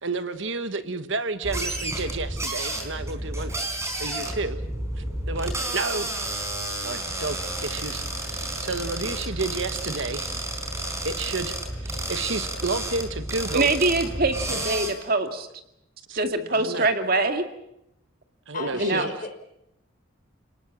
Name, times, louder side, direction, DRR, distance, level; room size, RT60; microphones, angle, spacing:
voice 1, 0.0-4.6 5.0-6.2 6.8-7.4 7.6-10.3 11.0-13.7 16.1-16.2 16.5-16.9 18.5-19.1, right 3 dB, 65° right, 10 dB, 1.4 m, -31 dB
sound 1, 1.4-14.9, right 1 dB, 15° right, 4.3 m, -31 dB
voice 2, 13.5-15.5 16.2-17.4 18.7-19.1, right 2 dB, 45° right, 6 dB, 2.2 m, -24 dB
voice 3, 18.5-19.4, left 3 dB, 40° left, 5 dB, 4.5 m, -35 dB
29.0 x 19.5 x 7.4 m, 0.83 s
head